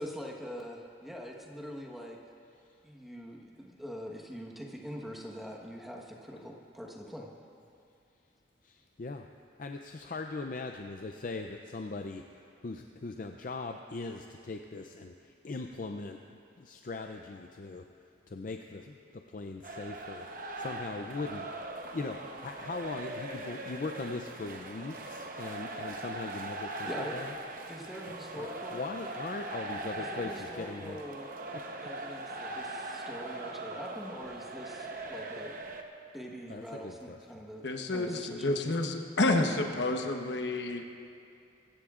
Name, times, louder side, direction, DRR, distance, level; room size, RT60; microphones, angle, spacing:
voice 1, 0.0-2.2 2.8-7.3 26.8-27.2 27.7-28.8 30.0-31.3 31.8-35.6 36.1-38.5, equal, ahead, -1 dB, 1.2 m, -43 dB
voice 2, 8.6-9.2 9.6-17.8 18.3-20.3 20.6-21.5 21.9-27.3 28.4-31.0 31.5-31.6 36.5-37.2, left 3 dB, 45° left, 4 dB, 0.5 m, -40 dB
sound 1, 19.6-35.8, right 2 dB, 45° right, 0.9 m, -41 dB
voice 3, 37.6-40.8, left 2 dB, 70° left, 4 dB, 1.0 m, -29 dB
23.0 x 15.5 x 2.5 m, 2.4 s
head